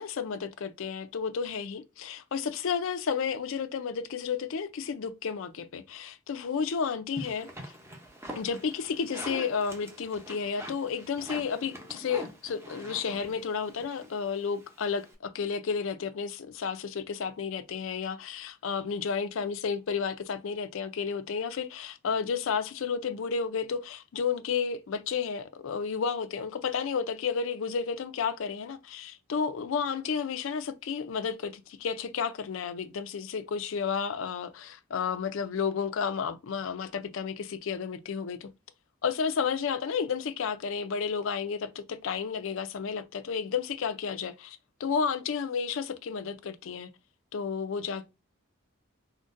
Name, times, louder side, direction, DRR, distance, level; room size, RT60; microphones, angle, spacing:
voice 1, 0.0-7.5 8.4-38.5 39.0-46.9 47.3-48.1, left 6 dB, 65° left, 0.4 m, -32 dB
sound 1, 7.1-15.1, equal, 15° right, 0.6 m, -44 dB
3.8 x 2.1 x 2.5 m
head